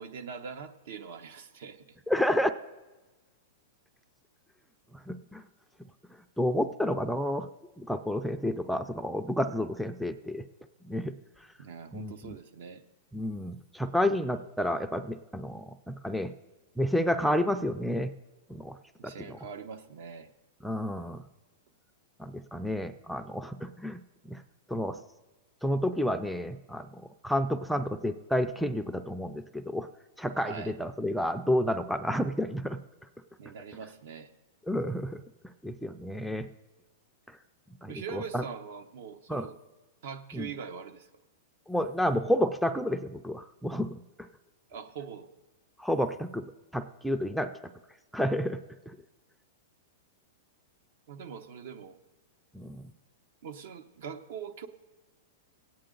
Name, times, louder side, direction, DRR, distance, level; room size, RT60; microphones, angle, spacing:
voice 1, 0.0-2.0 11.6-12.8 19.0-20.3 30.4-30.8 33.4-34.3 37.9-39.6 40.0-41.1 44.7-45.3 51.1-52.0 53.4-54.7, right 6 dB, 65° right, 9 dB, 0.9 m, -42 dB
voice 2, 2.1-2.5 5.1-5.4 6.4-7.5 7.8-10.4 10.9-11.1 11.9-12.3 13.1-16.3 16.8-18.1 18.5-18.7 19.3-19.4 20.6-21.2 22.2-24.0 24.3-24.4 24.7-25.0 25.6-29.9 30.2-32.8 34.7-35.2 35.6-36.5 37.8-38.4 39.3-39.5 40.3-40.5 41.7-44.0 45.8-46.4 46.7-47.5 48.1-48.6 52.5-52.8, equal, ahead, 7 dB, 0.4 m, -30 dB
17.5 x 8.7 x 3.8 m, 1.2 s
hypercardioid pair, 140°, 0 cm